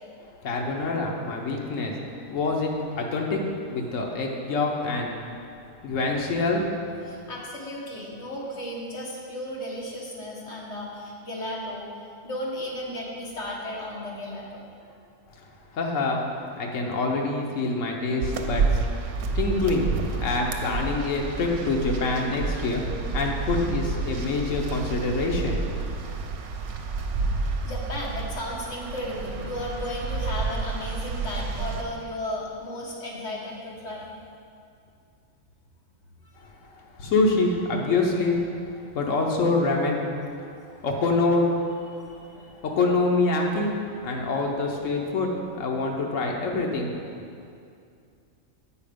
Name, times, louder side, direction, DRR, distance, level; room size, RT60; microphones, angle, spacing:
voice 1, 0.4-2.0 2.3-3.4 3.7-5.1 5.8-6.7 7.0-7.1 15.4-15.5 15.7-16.2 16.6-18.8 19.3-22.8 23.1-25.7 37.0-38.4 38.9-40.0 40.8-41.5 42.6-43.7 44.0-46.9, left 3 dB, 80° left, 0 dB, 1.2 m, -25 dB
voice 2, 7.0-11.9 12.2-14.9 27.2-34.1 36.2-36.5 40.9-41.0 41.9-42.5, left 1 dB, 60° left, -3 dB, 1.7 m, -35 dB
sound 1, 18.2-31.8, right 4 dB, 70° right, 1.0 m, -30 dB
8.5 x 5.2 x 5.1 m, 2.4 s
omnidirectional pair, 1.3 m